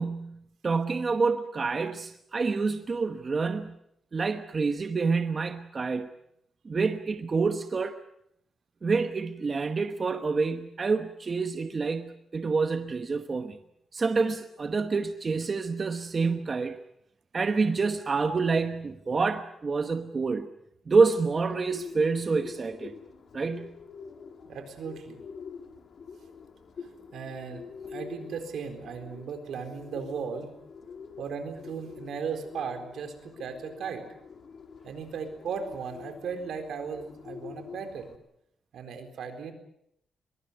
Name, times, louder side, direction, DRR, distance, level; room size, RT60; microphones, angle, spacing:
voice 1, 0.0-3.8 4.1-6.1 6.6-8.0 8.8-13.6 13.9-16.8 17.3-20.5 20.9-22.9 23.3-23.7, right 4 dB, 30° right, 8 dB, 1.1 m, -27 dB
Bird, 21.1-38.2, left 5 dB, 50° left, 2.2 m, -46 dB
voice 2, 24.5-25.2 27.1-30.5 31.2-34.1 34.8-38.1 38.7-39.5, right 6 dB, 75° right, 7 dB, 4.2 m, -36 dB
22.5 x 22.0 x 8.0 m, 0.76 s
wide cardioid pair, 145°, 0 cm